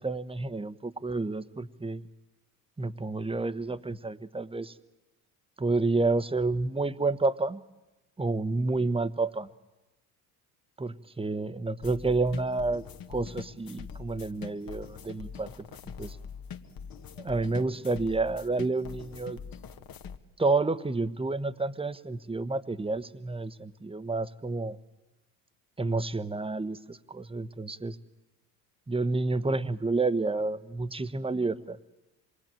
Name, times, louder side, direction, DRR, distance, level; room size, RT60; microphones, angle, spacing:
voice 1, 0.0-2.0 2.8-4.7 5.6-7.6 8.2-9.5 10.8-12.8 13.1-15.5 16.0-16.2 17.2-19.4 20.4-24.8 25.8-28.0 28.9-31.8, right 3 dB, 10° right, 13 dB, 1.2 m, -29 dB
sound 1, 11.8-20.2, left 6 dB, 50° left, 1.7 m, -44 dB
26.5 x 21.0 x 9.1 m, 1.1 s
hypercardioid pair, 70°, 45 cm